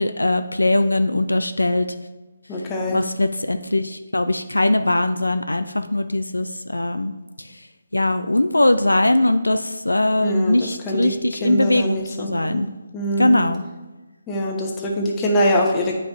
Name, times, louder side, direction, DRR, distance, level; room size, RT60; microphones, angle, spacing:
voice 1, 0.0-1.9 2.9-7.5 7.9-12.7 13.2-13.6, left 1 dB, 90° left, 9 dB, 0.4 m, -20 dB
voice 2, 2.5-3.0 10.2-11.1 11.4-12.6 12.9-13.4 14.3-16.0, equal, 15° left, -1 dB, 1.2 m, -23 dB
9.4 x 5.0 x 3.2 m, 1.2 s
figure-of-eight pair, 145°, 0 cm